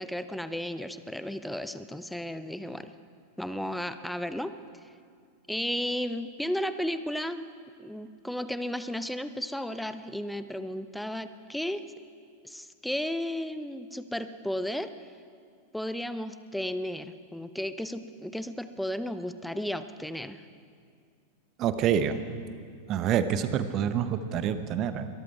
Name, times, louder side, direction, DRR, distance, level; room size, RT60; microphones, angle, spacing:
voice 1, 0.0-2.9 3.4-4.5 5.5-7.5 7.8-11.8 12.4-14.9 15.7-20.5, equal, ahead, 12 dB, 0.6 m, -34 dB
voice 2, 21.6-22.2 22.9-25.1, right 9 dB, 35° right, 11 dB, 1.0 m, -27 dB
22.0 x 13.5 x 4.7 m, 2.2 s
figure-of-eight pair, 90°, 0 cm